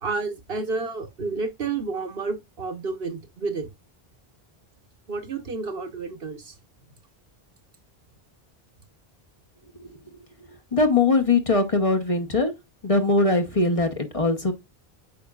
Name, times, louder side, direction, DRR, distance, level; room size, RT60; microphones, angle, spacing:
voice 1, 0.0-3.7 5.1-6.5, right 4 dB, 70° right, 1.3 m, -30 dB
voice 2, 9.8-10.2 10.7-12.5 12.8-14.5, left 3 dB, 35° left, 1.0 m, -21 dB
8.7 x 4.9 x 2.4 m
omnidirectional pair, 1.0 m